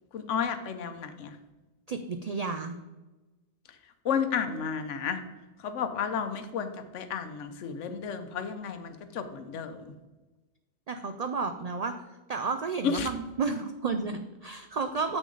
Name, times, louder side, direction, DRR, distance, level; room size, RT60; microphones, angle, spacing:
voice 1, 0.1-1.4 4.0-5.2 5.6-9.8 12.8-13.1, left 6 dB, 90° left, 9 dB, 1.1 m, -32 dB
voice 2, 1.9-2.8 10.9-11.9 12.3-15.2, right 4 dB, 85° right, 7 dB, 0.3 m, -32 dB
7.2 x 6.3 x 3.8 m, 1.1 s
omnidirectional pair, 1.2 m